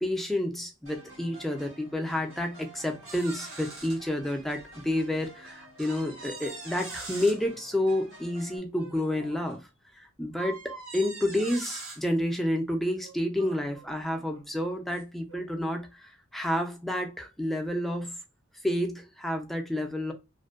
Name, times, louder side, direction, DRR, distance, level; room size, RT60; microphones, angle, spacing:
voice 1, 0.0-9.6 10.2-18.1 18.6-20.1, left 1 dB, ahead, 0.3 m, -30 dB
sound 1, 0.9-8.6, right 1 dB, 90° right, 1.4 m, -50 dB
sound 2, 3.1-4.0 4.6-4.7 5.8-7.4 8.8-9.6 10.3-12.0 13.0-14.4 14.9-15.0 15.3-15.5, right 3 dB, 70° right, 1.0 m, -43 dB
2.5 x 2.2 x 2.3 m
head